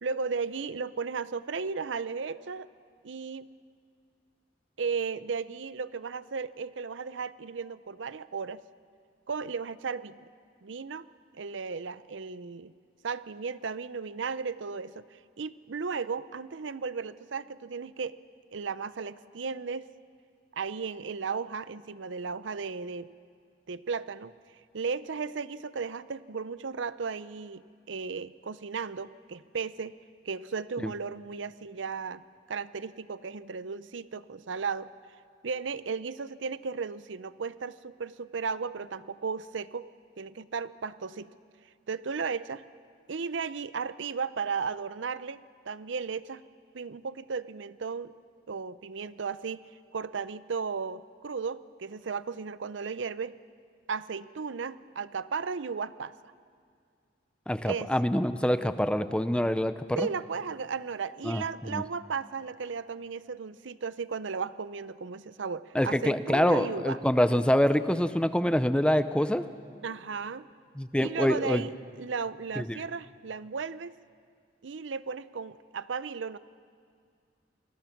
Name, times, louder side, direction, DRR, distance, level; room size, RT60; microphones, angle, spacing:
voice 1, 0.0-2.7 3.0-3.5 4.8-8.6 9.3-10.3 10.6-11.1 11.3-12.7 13.0-18.2 18.5-19.9 20.5-23.1 23.7-24.3 24.7-30.0 30.2-34.9 35.4-39.9 40.2-41.3 41.9-42.6 43.1-45.4 45.7-46.4 46.7-48.1 48.5-53.4 53.9-56.1 57.7-57.9 60.0-67.0 69.8-70.5 71.0-73.9 74.6-76.4, right 5 dB, 80° right, 16 dB, 0.6 m, -35 dB
voice 2, 57.5-60.1 61.2-61.8 65.7-69.5 70.8-71.6 72.6-72.7, equal, 5° left, 12 dB, 0.5 m, -26 dB
28.5 x 20.5 x 6.0 m, 2.2 s
head